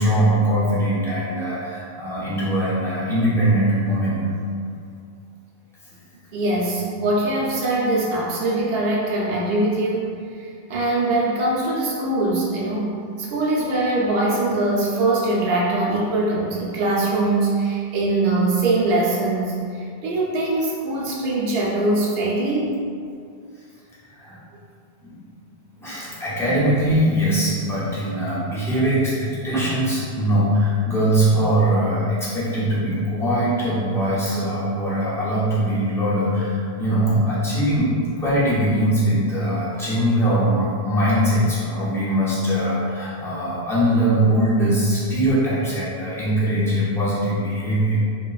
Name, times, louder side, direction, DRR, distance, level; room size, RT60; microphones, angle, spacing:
voice 1, 0.0-4.3 24.1-24.4 25.0-25.2 25.8-48.0, right 1 dB, 5° left, -10 dB, 0.4 m, -21 dB
voice 2, 6.3-10.0 10.4-22.8 26.4-26.5, right 2 dB, 70° right, -5 dB, 0.8 m, -22 dB
2.9 x 2.3 x 2.3 m, 2.3 s
omnidirectional pair, 1.1 m